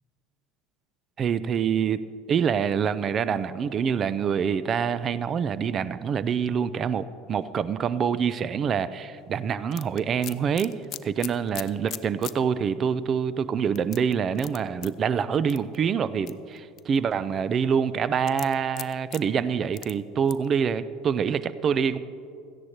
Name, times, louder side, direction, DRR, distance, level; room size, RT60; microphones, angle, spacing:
voice 1, 1.2-2.0 2.3-10.7 11.0-22.0, right 7 dB, 35° right, 16 dB, 0.4 m, -26 dB
sound 1, 9.7-12.4 12.8-12.9 13.8-14.9 15.5-15.8 16.3-17.0 18.3-19.2 19.7-19.9 20.3-20.5, left 13 dB, 45° left, 0.4 m, -38 dB
17.0 x 13.5 x 3.0 m, 2.5 s
figure-of-eight pair, 70°, 0 cm